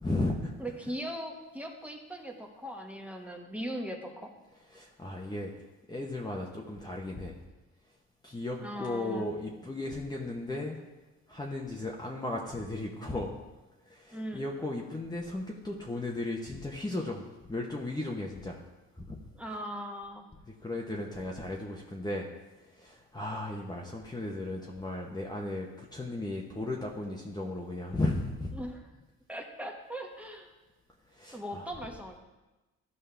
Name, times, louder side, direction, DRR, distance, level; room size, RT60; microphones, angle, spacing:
voice 1, 0.0-0.5 4.7-5.5 5.9-7.4 8.2-10.8 11.3-13.3 13.9-18.6 18.9-19.2 20.5-22.3 22.6-28.5 31.1-31.7, left 2 dB, 15° left, -1 dB, 1.0 m, -35 dB
voice 2, 0.6-4.3 8.6-9.3 14.1-14.5 19.3-20.2 28.5-28.8 29.3-30.5 31.3-32.2, equal, 5° right, 2 dB, 1.2 m, -39 dB
13.5 x 5.4 x 3.4 m, 1.1 s
cardioid pair, 90°, 30 cm